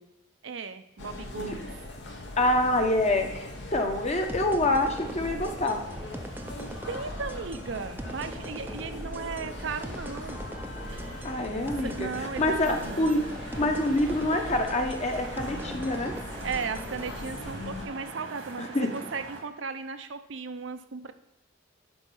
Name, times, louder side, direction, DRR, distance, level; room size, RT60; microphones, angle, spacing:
voice 1, 0.4-1.7 6.9-10.5 11.6-13.1 16.4-21.1, right 5 dB, 70° right, 10 dB, 0.6 m, -36 dB
sound 1, 1.0-17.9, left 2 dB, 65° left, 1.0 m, -41 dB
voice 2, 2.4-3.4 3.7-5.8 11.2-12.1 12.4-13.2 13.6-16.1 18.6-18.9, left 1 dB, 35° left, 4 dB, 0.9 m, -26 dB
sound 2, 4.3-17.2, right 1 dB, 10° right, 0.5 m, -41 dB
sound 3, 4.5-19.4, right 3 dB, 85° right, 1.9 m, -45 dB
11.0 x 4.1 x 5.5 m, 0.92 s
head